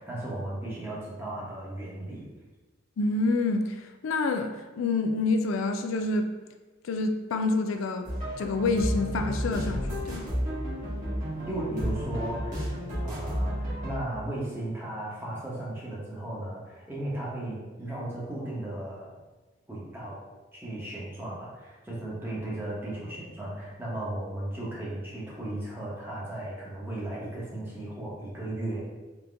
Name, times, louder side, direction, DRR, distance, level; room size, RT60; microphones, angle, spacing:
voice 1, 0.0-2.3 11.5-12.7 13.0-19.2 19.7-20.2 20.5-28.9, right 1 dB, 10° right, -7 dB, 1.0 m, -36 dB
voice 2, 3.0-6.3 6.8-8.1 8.4-10.3, left 3 dB, 85° left, 6 dB, 0.4 m, -27 dB
sound 1, 8.0-14.0, equal, 40° right, 1.4 m, -31 dB
3.9 x 2.8 x 3.4 m, 1.2 s
head